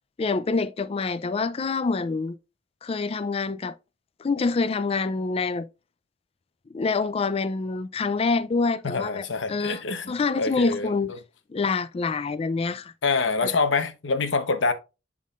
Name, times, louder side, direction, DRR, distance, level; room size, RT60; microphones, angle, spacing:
voice 1, 0.2-2.4 2.8-3.8 4.2-5.7 6.7-9.8 10.1-11.1 11.5-12.9 13.4-13.5, left 4 dB, 30° left, 0.4 m, -26 dB
voice 2, 8.8-10.9 13.0-14.7, left 4 dB, 70° left, 0.9 m, -26 dB
11.5 x 3.8 x 2.4 m
head